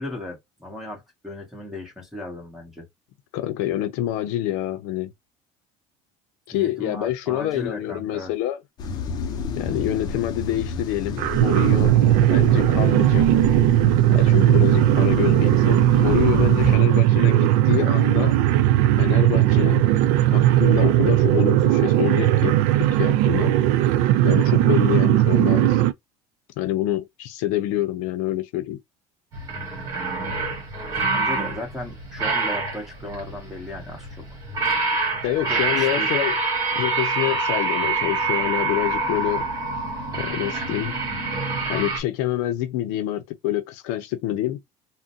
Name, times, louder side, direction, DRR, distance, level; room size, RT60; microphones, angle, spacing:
voice 1, 0.0-2.8 6.5-8.3 31.1-34.1 35.5-36.1, left 1 dB, 5° right, 1.4 m, -36 dB
voice 2, 3.3-5.1 6.5-8.6 9.6-12.0 12.3-13.3 14.1-18.5 19.0-19.9 20.3-23.6 24.2-25.8 26.6-28.8 35.2-36.3 36.7-39.5 40.1-41.0 41.7-44.6, left 13 dB, 70° left, 0.6 m, -26 dB
sound 1, 8.8-16.8, left 5 dB, 30° left, 0.6 m, -30 dB
sound 2, 11.2-25.9, right 14 dB, 75° right, 0.4 m, -18 dB
sound 3, 29.3-42.0, right 3 dB, 25° right, 1.4 m, -26 dB
3.7 x 2.1 x 2.6 m
cardioid pair, 155°, 13 cm